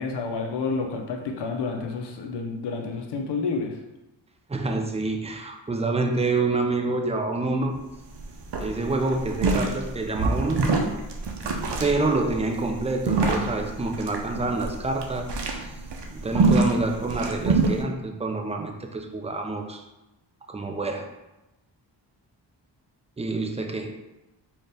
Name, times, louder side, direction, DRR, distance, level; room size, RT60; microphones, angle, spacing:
voice 1, 0.0-3.8, left 4 dB, 65° left, 2 dB, 0.7 m, -29 dB
voice 2, 4.5-7.8 8.6-10.7 11.8-15.7 16.1-19.8 20.5-21.1 23.2-24.0, right 3 dB, 15° right, 3 dB, 0.5 m, -27 dB
sound 1, 7.7-7.8 8.1-8.3 8.5-17.8, right 3 dB, 65° right, 0.7 m, -25 dB
4.1 x 2.5 x 3.4 m, 0.99 s
cardioid pair, 55°, 44 cm